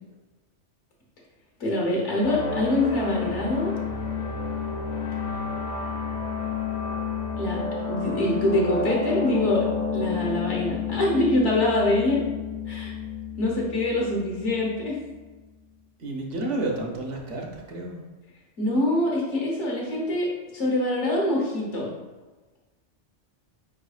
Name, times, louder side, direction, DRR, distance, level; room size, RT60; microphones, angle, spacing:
voice 1, 1.6-3.7 7.4-9.7 9.9-12.2 12.7-12.9 13.4-15.0 18.6-21.9, left 1 dB, 75° left, -3 dB, 1.5 m, -25 dB
sound 1, 2.2-15.3, left 5 dB, 50° left, 0.5 m, -30 dB
voice 2, 16.0-18.0, right 2 dB, 80° right, -1 dB, 1.2 m, -30 dB
5.0 x 4.0 x 2.4 m, 1.2 s
omnidirectional pair, 1.2 m